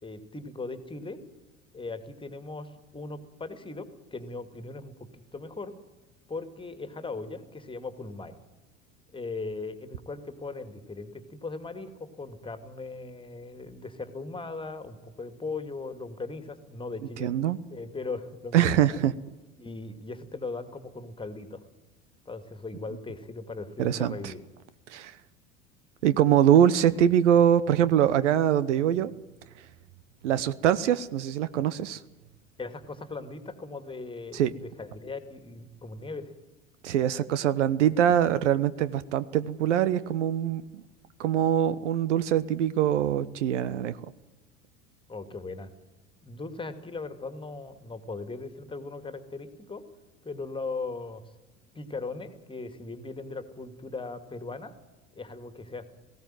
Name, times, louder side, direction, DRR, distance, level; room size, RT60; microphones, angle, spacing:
voice 1, 0.0-1.2 1.7-5.7 6.3-8.4 9.1-17.3 17.7-19.0 19.6-21.6 22.3-24.4 32.6-36.3 45.1-45.7 46.2-49.8 50.2-51.2 51.7-54.7 55.1-55.8, left 3 dB, 15° left, 10 dB, 2.3 m, -38 dB
voice 2, 17.2-17.6 18.5-19.1 23.8-24.3 24.9-25.2 26.0-29.1 30.2-32.0 34.3-34.5 36.8-40.8 41.2-44.0, right 10 dB, 65° right, 16 dB, 1.0 m, -23 dB
18.5 x 16.5 x 9.1 m, 1.1 s
figure-of-eight pair, 75°, 38 cm